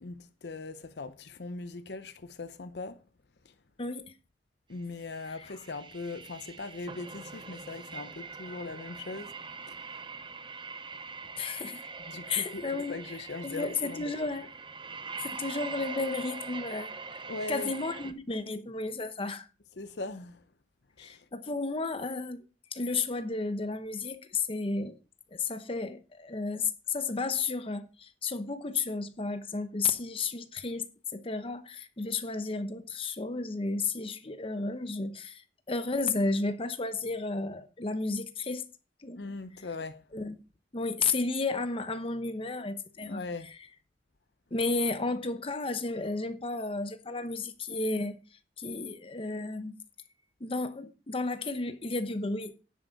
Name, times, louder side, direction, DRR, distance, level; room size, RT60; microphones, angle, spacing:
voice 1, 0.0-3.0 3.4-3.5 4.7-9.3 9.7-9.8 12.1-14.1 17.3-17.7 19.8-20.4 21.0-21.2 39.2-40.0 43.0-43.5, left 3 dB, 70° left, 0.7 m, -40 dB
voice 2, 3.8-4.1 5.3-5.5 11.4-11.9 12.3-13.2 13.4-14.5 15.2-17.2 17.5-19.5 21.0-22.4 22.7-25.0 25.3-38.7 39.0-39.2 40.1-40.3 40.7-43.6 44.5-48.2 48.6-49.8 50.4-52.5, left 3 dB, 30° left, 0.9 m, -33 dB
sound 1, 5.0-18.1, right 4 dB, 25° right, 0.7 m, -43 dB
10.5 x 8.0 x 4.0 m
head